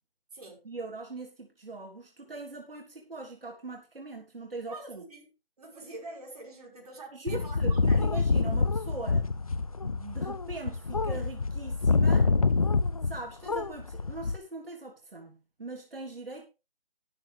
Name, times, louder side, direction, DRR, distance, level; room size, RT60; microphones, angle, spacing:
voice 1, 0.6-5.0 7.1-9.3 9.8-12.3 13.0-16.4, right 2 dB, 70° right, 3.6 m, -41 dB
voice 2, 4.7-5.2 5.6-8.1, right 2 dB, 40° right, 5.8 m, -45 dB
sound 1, 7.3-13.2 13.5-14.4, left 4 dB, 35° left, 0.6 m, -26 dB
13.5 x 11.0 x 3.5 m
figure-of-eight pair, 165°, 30 cm